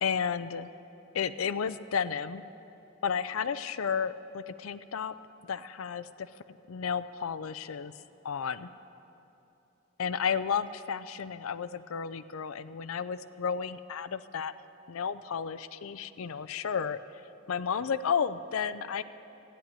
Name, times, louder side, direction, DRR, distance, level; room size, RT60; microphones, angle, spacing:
voice 1, 0.0-0.7 1.1-2.4 3.0-5.1 5.5-7.9 8.2-8.7 10.0-14.5 14.9-17.0 17.5-19.0, left 6 dB, 85° left, 13 dB, 0.5 m, -32 dB
13.5 x 10.0 x 9.0 m, 2.9 s
head